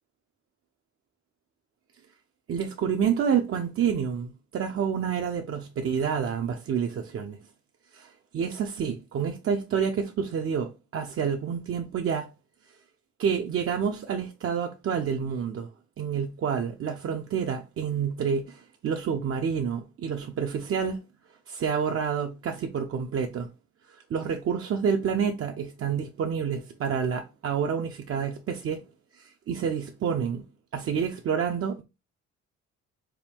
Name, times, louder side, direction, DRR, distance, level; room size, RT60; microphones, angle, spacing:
voice 1, 2.5-7.4 7.9-12.3 13.2-15.7 16.0-21.0 21.5-23.5 23.9-28.8 29.1-30.4 30.7-31.8, right 7 dB, 45° right, 0.5 m, -28 dB
4.4 x 2.2 x 3.4 m
cardioid pair, 90°, 30 cm